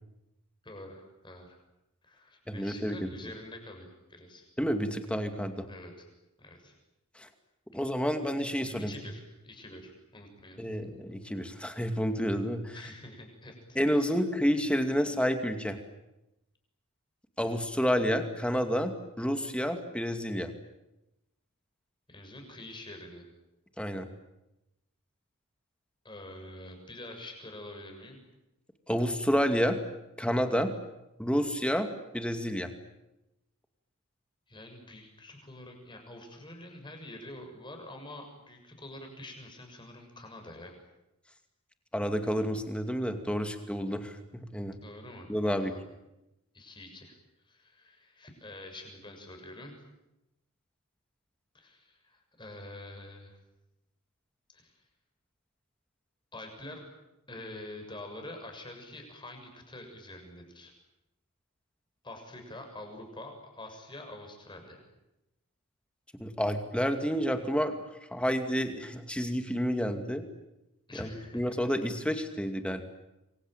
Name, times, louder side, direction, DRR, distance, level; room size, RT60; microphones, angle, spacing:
voice 1, 0.6-1.6 2.0-4.5 5.7-6.1 6.4-6.7 8.7-10.9 12.7-14.2 22.1-23.3 26.0-28.2 34.5-40.8 44.8-45.8 46.5-47.2 47.4-49.8 51.5-53.4 54.5-54.8 56.3-56.9 57.3-60.7 62.0-64.8 70.9-71.6, left 1 dB, 20° left, 4 dB, 7.0 m, -46 dB
voice 2, 2.5-3.1 4.6-5.7 7.2-7.3 7.7-8.9 10.6-12.8 13.8-15.8 17.4-20.5 23.8-24.1 28.9-29.8 30.2-30.7 31.2-32.7 41.9-44.8 45.3-45.7 66.2-67.8 68.1-70.2 71.0-72.8, equal, 5° left, 6 dB, 2.4 m, -29 dB
27.5 x 23.5 x 9.2 m, 0.94 s
head